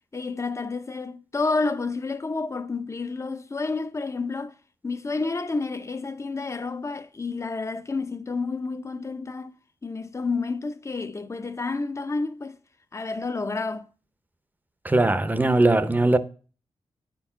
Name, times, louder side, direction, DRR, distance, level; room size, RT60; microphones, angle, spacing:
voice 1, 0.1-4.5 4.8-9.5 9.8-12.6 12.9-13.9, left 3 dB, 30° left, 0.7 m, -30 dB
voice 2, 14.8-16.2, right 2 dB, 15° right, 0.8 m, -20 dB
9.9 x 4.6 x 5.7 m
wide cardioid pair, 115°, 11 cm